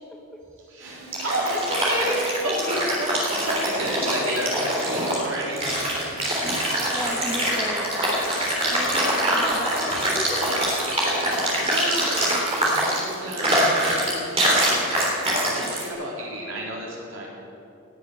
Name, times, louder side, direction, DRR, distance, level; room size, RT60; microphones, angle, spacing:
voice 1, 0.6-5.9 9.9-10.0 11.5-12.2 12.6-17.3, right 1 dB, 55° right, -4 dB, 4.2 m, -31 dB
sound 1, 0.8-15.9, right 1 dB, 25° right, 3.6 m, -24 dB
voice 2, 6.8-7.9 8.7-10.5, equal, ahead, 0 dB, 1.0 m, -34 dB
17.5 x 7.6 x 9.8 m, 2.8 s
head